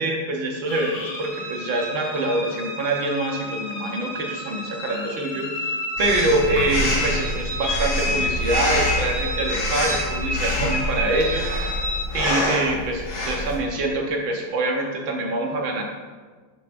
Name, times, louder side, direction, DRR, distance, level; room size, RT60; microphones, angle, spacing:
voice 1, 0.0-11.7 12.1-15.8, right 2 dB, 85° right, 0 dB, 1.9 m, -25 dB
sound 1, 0.7-12.1, left 1 dB, 50° left, 1.9 m, -30 dB
Breathing, 6.0-13.6, left 1 dB, 90° left, 2.5 m, -26 dB
9.1 x 6.7 x 2.5 m, 1.4 s
omnidirectional pair, 2.1 m